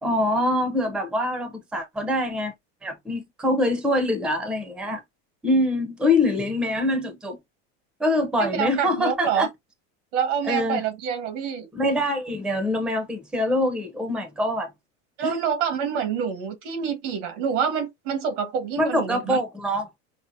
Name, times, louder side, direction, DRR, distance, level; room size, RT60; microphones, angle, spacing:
voice 1, 0.0-2.5 2.8-5.0 5.4-7.4 8.0-9.5 10.4-10.8 11.7-14.7 15.2-15.4 18.8-19.9, left 1 dB, ahead, 0.6 m, -24 dB
voice 2, 8.4-9.5 10.1-11.7 15.2-19.4, right 7 dB, 85° right, 1.7 m, -27 dB
5.5 x 2.0 x 2.6 m
supercardioid pair, 150°, 35 cm